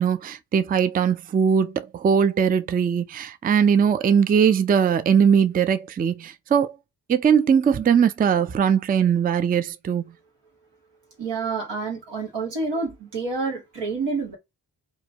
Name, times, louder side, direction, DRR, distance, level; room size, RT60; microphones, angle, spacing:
voice 1, 0.0-6.8 7.1-10.1, right 7 dB, 25° right, 0.3 m, -20 dB
voice 2, 11.2-14.4, right 4 dB, 90° right, 1.3 m, -28 dB
2.7 x 2.2 x 2.7 m
cardioid pair, 45°, 41 cm